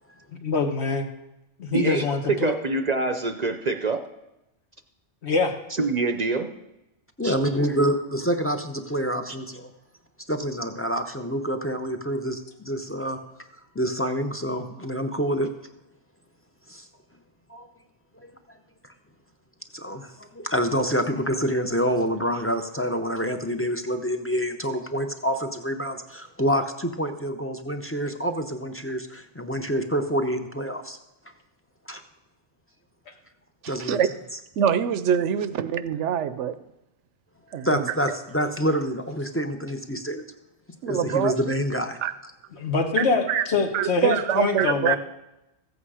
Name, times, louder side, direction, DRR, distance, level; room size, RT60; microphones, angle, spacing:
voice 1, 0.3-1.1 1.6-2.5 5.2-5.5 42.6-45.0, left 4 dB, 70° left, 4 dB, 1.5 m, -24 dB
voice 2, 1.7-4.0 5.8-6.5 7.2-7.3, right 3 dB, 45° right, 7 dB, 0.6 m, -25 dB
voice 3, 7.2-9.7 10.3-13.2 13.7-15.5 16.7-16.9 17.5-17.7 18.2-18.3 19.7-31.0 31.9-32.0 33.7-34.0 37.6-40.2 40.9-42.0, equal, 15° left, 6 dB, 0.6 m, -27 dB
voice 4, 33.6-34.1 34.6-36.6 37.5-37.9 40.8-41.4 42.0-42.1 43.0-43.5 43.7-45.0, right 8 dB, 90° right, 13 dB, 1.0 m, -24 dB
14.5 x 8.3 x 4.9 m, 0.92 s
omnidirectional pair, 1.2 m